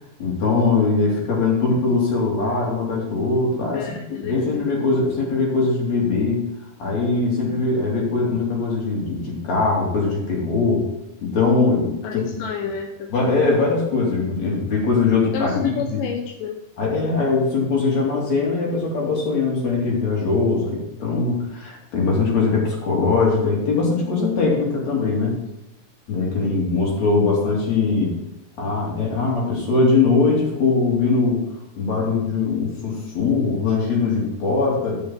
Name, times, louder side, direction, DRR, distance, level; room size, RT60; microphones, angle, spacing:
voice 1, 0.2-6.4 6.8-10.9 11.2-12.2 13.1-16.0 16.8-25.4 26.1-28.1 28.6-31.4 31.8-35.0, left 4 dB, 45° left, -3 dB, 3.9 m, -21 dB
voice 2, 3.7-4.6 12.0-13.4 15.3-16.6, left 7 dB, 75° left, 3 dB, 2.1 m, -29 dB
13.0 x 6.4 x 4.5 m, 0.92 s
omnidirectional pair, 4.7 m